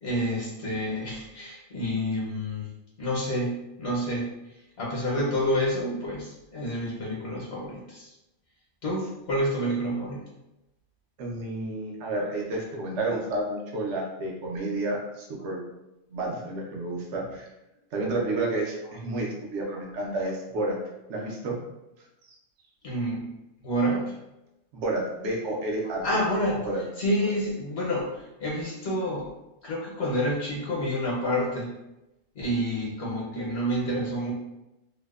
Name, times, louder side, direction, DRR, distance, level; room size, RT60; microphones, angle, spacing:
voice 1, 0.0-2.7 3.0-4.3 4.8-8.1 8.8-10.2 22.8-23.3 23.6-24.2 26.0-29.3 29.6-31.7 32.4-34.3, equal, 70° left, -4 dB, 0.9 m, -28 dB
voice 2, 11.2-15.6 16.1-17.5 17.9-20.8 21.1-21.6 24.7-26.2 26.6-26.8, right 2 dB, 80° right, -1 dB, 0.9 m, -30 dB
2.7 x 2.0 x 2.3 m, 0.93 s
omnidirectional pair, 1.2 m